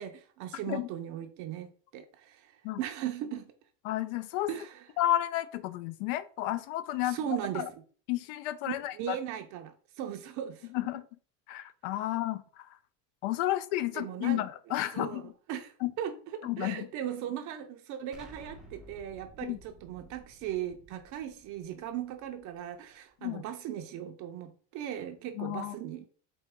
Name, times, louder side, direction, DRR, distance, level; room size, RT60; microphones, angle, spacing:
voice 1, 0.0-1.7 1.9-3.5 4.5-4.8 7.0-7.8 8.7-10.7 13.9-14.4 14.9-26.1, right 10 dB, 50° right, 0.5 m, -38 dB
voice 2, 3.8-4.5 5.0-7.7 8.1-9.2 10.7-11.0 11.5-12.7 13.2-15.3 15.8-15.9 16.4-16.9 19.4-19.6 23.2-23.4 25.3-25.8, left 14 dB, 85° left, 0.6 m, -32 dB
Explosion, 18.1-22.9, right 2 dB, ahead, 0.4 m, -55 dB
4.4 x 2.8 x 3.5 m
cardioid pair, 145°, 38 cm